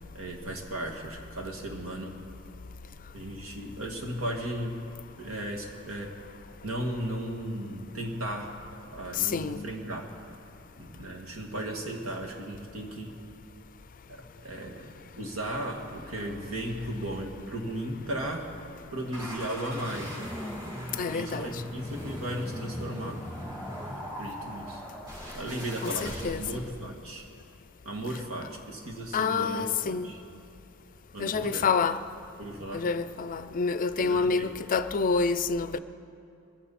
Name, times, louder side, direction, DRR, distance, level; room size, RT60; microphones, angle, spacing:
voice 1, 0.1-2.2 3.1-4.8 5.2-6.1 6.6-10.1 10.8-13.2 14.1-18.5 18.9-20.3 21.1-23.2 23.8-24.8 25.3-27.2 27.8-30.2 31.1-31.7 32.4-32.9 34.0-34.5, right 1 dB, 80° right, 2.1 m, -36 dB
voice 2, 9.1-9.6 21.0-21.6 25.8-26.4 29.1-30.1 31.2-32.0 32.7-35.8, left 5 dB, 40° left, 0.5 m, -28 dB
sound 1, 19.1-26.7, equal, 20° right, 4.3 m, -39 dB
22.0 x 15.0 x 4.2 m
head